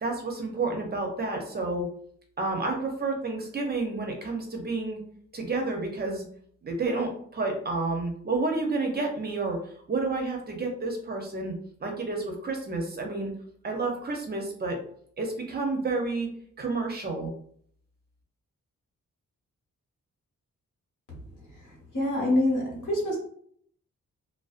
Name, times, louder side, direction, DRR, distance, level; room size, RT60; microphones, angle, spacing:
voice 1, 0.0-1.9 2.4-5.0 5.3-6.3 6.6-9.6 9.9-13.3 13.6-14.8 15.2-16.3 16.6-17.3, right 3 dB, 35° right, 2 dB, 0.4 m, -30 dB
voice 2, 21.9-23.2, left 1 dB, 80° left, -3 dB, 1.1 m, -25 dB
2.4 x 2.1 x 2.3 m, 0.62 s
wide cardioid pair, 160°, 30 cm